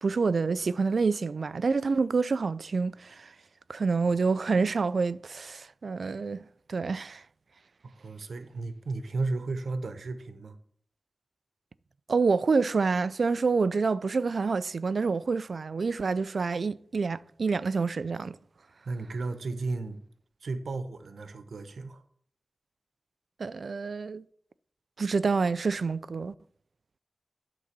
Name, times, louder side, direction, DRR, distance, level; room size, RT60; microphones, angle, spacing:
voice 1, 0.0-3.3 3.7-7.2 12.1-18.4 23.4-24.2 25.0-26.3, right 4 dB, 70° right, 0.3 m, -27 dB
voice 2, 7.8-10.5 18.8-20.0 20.4-22.0, right 3 dB, 85° right, 0.9 m, -34 dB
11.5 x 3.9 x 6.6 m
wide cardioid pair, 80°, 0 cm